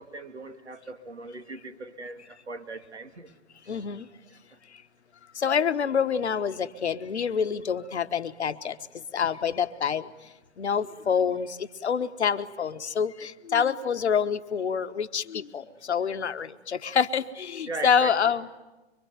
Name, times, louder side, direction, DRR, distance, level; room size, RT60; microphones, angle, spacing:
voice 1, 0.0-3.3 3.6-3.7 17.7-18.2, right 3 dB, 85° right, 7 dB, 2.2 m, -39 dB
voice 2, 3.7-4.1 5.3-10.1 10.6-18.5, left 7 dB, 75° left, 10 dB, 1.3 m, -27 dB
25.0 x 24.5 x 9.5 m, 1.1 s
figure-of-eight pair, 105°, 33 cm